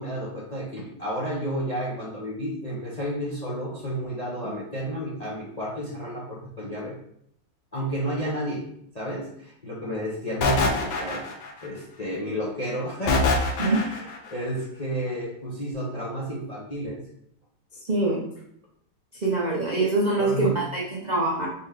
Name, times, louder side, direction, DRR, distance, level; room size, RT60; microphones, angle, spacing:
voice 1, 0.0-7.0 7.7-8.6 8.9-11.3 11.6-17.0 19.5-19.6 20.2-20.6, equal, 40° left, -5 dB, 0.6 m, -31 dB
sound 1, 10.4-11.7 13.1-14.2, left 3 dB, 75° left, 1.4 m, -24 dB
voice 2, 17.9-18.2 19.2-21.5, right 2 dB, 60° right, -4 dB, 0.4 m, -24 dB
4.2 x 3.3 x 3.6 m, 0.70 s
omnidirectional pair, 2.0 m